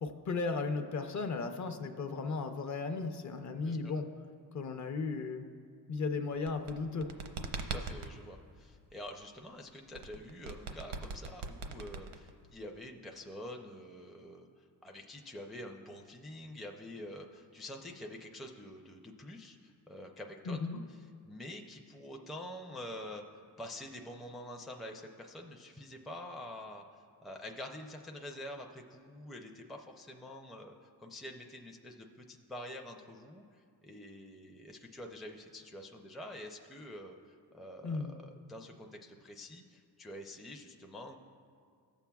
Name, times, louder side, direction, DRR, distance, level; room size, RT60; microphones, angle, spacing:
voice 1, 0.0-4.0 4.5-5.4 5.9-7.1 20.5-20.8 37.8-38.2, left 4 dB, 45° left, 6 dB, 0.6 m, -35 dB
sound 1, 6.3-8.1 9.9-12.5, right 4 dB, 85° right, 0.8 m, -41 dB
voice 2, 7.6-20.6 20.9-23.2 23.6-41.2, left 1 dB, ahead, 2 dB, 0.4 m, -47 dB
18.5 x 7.1 x 2.3 m, 2.2 s
cardioid pair, 120°, 41 cm